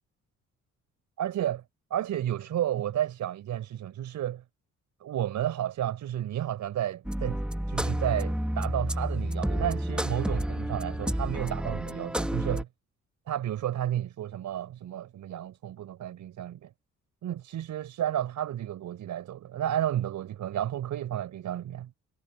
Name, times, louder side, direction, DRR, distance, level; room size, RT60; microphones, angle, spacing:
voice 1, 1.2-1.6 1.9-4.4 5.0-7.4 7.7-12.7 13.3-16.7 17.2-21.9, right 11 dB, 75° right, 4.5 m, -32 dB
sound 1, 7.0-12.6, equal, 5° right, 1.8 m, -30 dB
cardioid pair, 90°, 30 cm